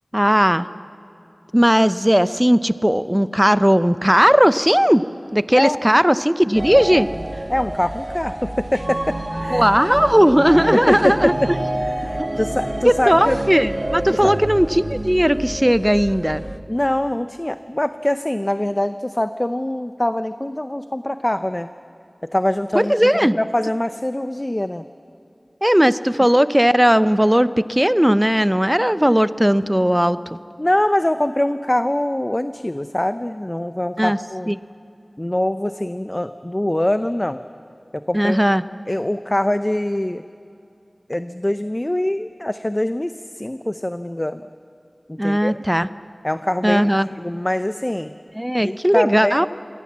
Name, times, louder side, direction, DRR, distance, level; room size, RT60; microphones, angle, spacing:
voice 1, 0.1-0.7 1.5-5.0 5.3-7.1 9.5-11.3 12.2-12.3 12.8-16.4 22.7-23.4 25.6-30.2 34.0-34.2 34.5-34.6 38.1-38.6 45.2-45.9 46.6-47.1 48.4-49.5, equal, 10° right, 15 dB, 0.7 m, -17 dB
sound 1, 6.5-16.6, right 1 dB, 40° right, 1.4 m, -28 dB
voice 2, 7.5-9.2 9.4-9.7 10.7-11.5 11.8-13.4 14.1-14.4 16.7-21.7 22.3-23.1 23.3-24.8 26.2-26.3 30.6-34.6 35.2-37.4 37.9-38.4 38.9-40.2 41.1-44.4 45.1-45.6 46.2-46.8 47.2-48.1 48.6-49.4, left 1 dB, 30° left, 11 dB, 0.6 m, -23 dB
26.0 x 18.5 x 7.4 m, 2.7 s
wide cardioid pair, 45°, 0 cm